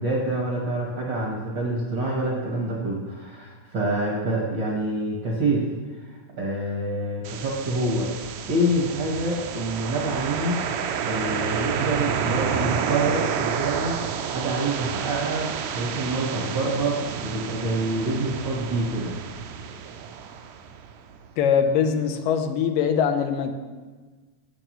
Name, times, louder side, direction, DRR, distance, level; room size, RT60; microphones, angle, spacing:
voice 1, 0.0-5.6 6.0-10.6 11.0-19.1, right 1 dB, 55° right, -3 dB, 1.2 m, -27 dB
sound 1, 7.2-21.1, right 7 dB, 80° right, 1.7 m, -30 dB
voice 2, 21.4-23.5, left 7 dB, 90° left, 6 dB, 2.4 m, -22 dB
16.5 x 6.7 x 3.0 m, 1.3 s
omnidirectional pair, 3.8 m